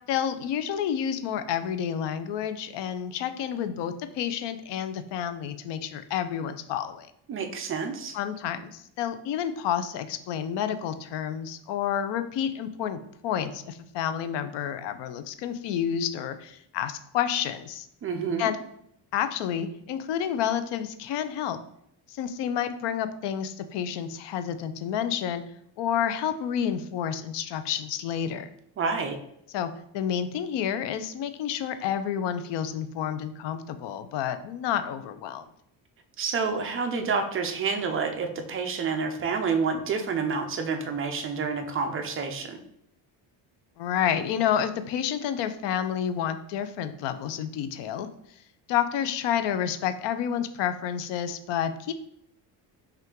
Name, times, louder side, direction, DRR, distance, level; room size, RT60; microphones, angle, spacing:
voice 1, 0.1-7.1 8.1-17.9 18.4-18.6 19.1-21.6 22.1-25.4 25.8-28.5 29.5-35.4 43.8-48.1 48.7-51.9, left 9 dB, 70° left, 10 dB, 0.5 m, -29 dB
voice 2, 7.3-8.2 18.0-18.5 28.8-29.2 36.2-42.6, right 5 dB, 30° right, 6 dB, 0.4 m, -28 dB
5.4 x 2.5 x 3.6 m, 0.74 s
cardioid pair, 160°, 45 cm